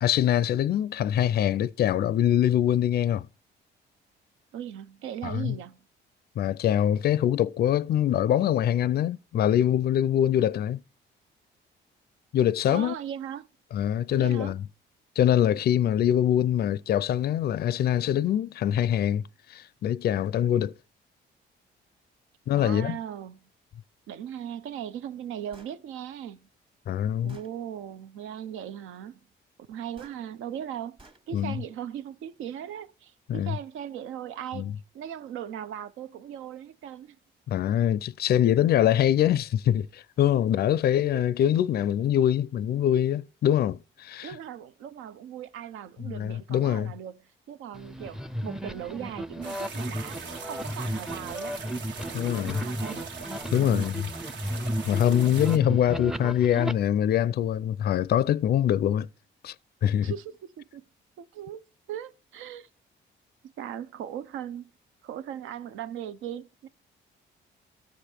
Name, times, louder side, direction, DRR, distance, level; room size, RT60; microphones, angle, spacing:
voice 1, 0.0-3.3 5.2-5.5 6.4-10.8 12.3-12.9 13.7-14.6 15.2-20.7 22.5-23.0 26.9-27.4 31.3-31.6 33.3-33.5 34.5-34.7 37.5-44.4 46.0-46.9 52.1-52.6 53.5-54.1 54.8-59.1 59.4-59.5 59.8-60.1, left 10 dB, 55° left, 0.4 m, -24 dB
voice 2, 4.5-5.8 12.7-13.5 14.1-14.6 22.5-23.4 24.1-26.4 27.2-29.2 29.7-31.0 31.3-37.2 41.1-41.2 44.2-47.2 47.5-51.6 52.1-53.1 53.5-53.9 55.1-55.4 60.0-60.9 61.2-61.6 61.9-62.7 63.4-64.7 65.0-66.7, right 10 dB, 85° right, 0.6 m, -38 dB
Gunshot gunfire, 25.5-25.8 26.7-26.8 27.3-27.5 30.0-30.2 31.0-31.2, right 2 dB, 25° right, 1.3 m, -53 dB
sound 1, 47.7-56.7, equal, ahead, 0.5 m, -34 dB
sound 2, 49.4-55.6, right 5 dB, 65° right, 1.2 m, -41 dB
13.0 x 5.0 x 4.4 m
cardioid pair, 90°, 20 cm